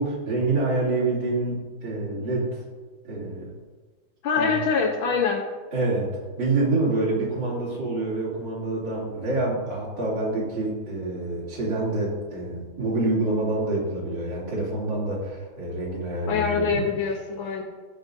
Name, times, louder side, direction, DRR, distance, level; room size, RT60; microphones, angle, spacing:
voice 1, 0.0-2.6 3.0-3.5 4.4-4.5 5.7-16.8, right 2 dB, 65° right, -6 dB, 3.6 m, -27 dB
voice 2, 4.2-5.4 16.3-17.6, left 5 dB, 85° left, 1 dB, 1.8 m, -24 dB
18.0 x 6.7 x 2.7 m, 1.4 s
omnidirectional pair, 2.2 m